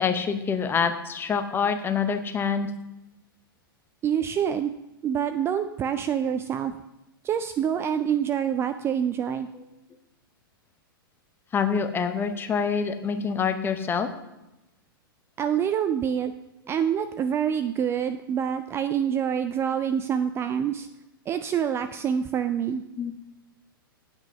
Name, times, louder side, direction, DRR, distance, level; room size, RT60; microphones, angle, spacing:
voice 1, 0.0-2.7 11.5-14.1 23.0-23.1, left 6 dB, 20° left, 8 dB, 0.8 m, -26 dB
voice 2, 4.0-4.7 5.0-6.8 7.2-9.5 15.4-16.3 16.7-20.9 21.3-22.8, right 8 dB, 20° right, 10 dB, 0.3 m, -26 dB
8.9 x 6.0 x 5.2 m, 0.95 s
hypercardioid pair, 110°, 12 cm